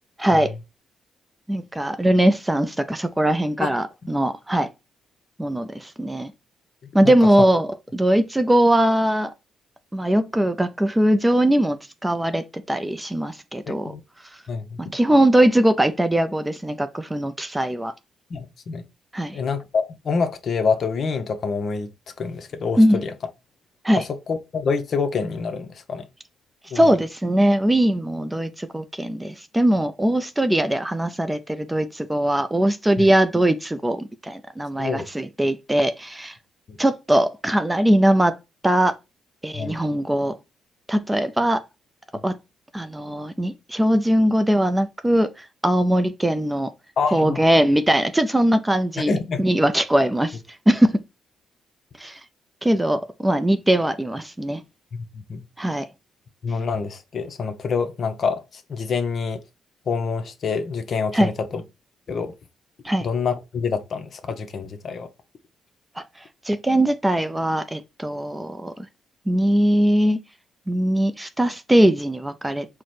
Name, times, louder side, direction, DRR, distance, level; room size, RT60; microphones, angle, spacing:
voice 1, 0.2-0.5 1.5-4.7 5.4-6.3 6.9-9.3 9.9-13.9 14.8-17.9 19.1-19.4 22.8-23.0 23.8-24.0 26.7-36.3 36.8-38.3 38.6-38.9 39.4-40.3 40.9-41.6 42.2-42.3 42.7-46.7 47.1-49.1 49.4-50.4 50.7-51.0 52.0-52.2 52.6-54.6 55.6-55.9 61.1-61.3 62.8-63.1 66.0-66.1 66.5-68.7 69.3-70.2 70.7-72.7, right 1 dB, 10° right, 0.4 m, -20 dB
voice 2, 13.7-14.0 14.5-15.0 18.3-18.8 19.3-21.9 22.2-23.1 24.0-26.1 26.7-26.9 33.0-33.1 34.8-35.1 36.7-36.8 39.5-39.8 47.0-47.4 49.0-49.5 54.9-55.4 56.4-59.4 59.9-61.6 62.1-62.3 63.0-65.1, left 5 dB, 50° left, 0.7 m, -27 dB
4.7 x 2.1 x 4.2 m
cardioid pair, 90°, 0 cm